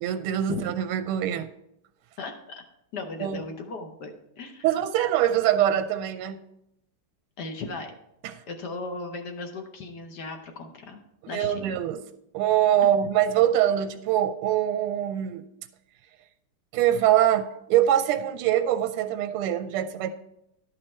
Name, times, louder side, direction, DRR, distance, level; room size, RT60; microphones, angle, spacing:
voice 1, 0.0-1.5 3.2-3.4 4.6-6.4 8.2-8.4 11.2-12.0 12.3-15.4 16.7-20.1, right 11 dB, 90° right, 9 dB, 1.5 m, -24 dB
voice 2, 2.2-2.6 2.9-4.6 7.4-7.9 8.5-11.8, left 3 dB, 60° left, 5 dB, 1.2 m, -37 dB
11.5 x 5.4 x 4.2 m, 0.79 s
omnidirectional pair, 2.4 m